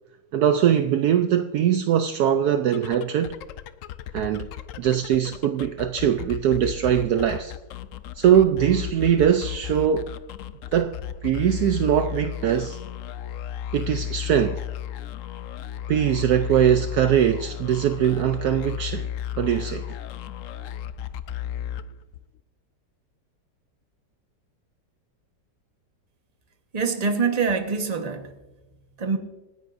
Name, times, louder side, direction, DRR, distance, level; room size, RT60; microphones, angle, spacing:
voice 1, 0.3-3.4 4.1-4.5 4.8-7.5 8.1-10.1 10.7-11.0 11.2-12.8 13.7-14.6 15.9-19.1 19.4-20.0, right 9 dB, 70° right, 1.0 m, -21 dB
sound 1, 2.7-22.4, left 10 dB, 75° left, 0.7 m, -34 dB
voice 2, 26.7-28.3 29.0-29.2, right 5 dB, 25° right, 1.1 m, -24 dB
25.0 x 10.5 x 2.6 m
omnidirectional pair, 1.9 m